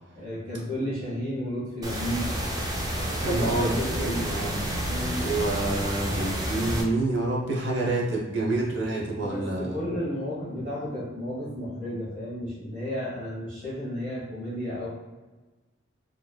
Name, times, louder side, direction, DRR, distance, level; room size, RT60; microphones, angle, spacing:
voice 1, 0.1-2.3 3.2-4.2 4.8-5.2 9.3-14.9, equal, 40° right, -8 dB, 1.5 m, -32 dB
sound 1, 1.8-6.8, equal, 20° right, 0.4 m, -30 dB
voice 2, 3.2-4.6 5.2-9.8, right 2 dB, 60° right, -3 dB, 0.9 m, -28 dB
4.6 x 3.2 x 2.2 m, 1.2 s
head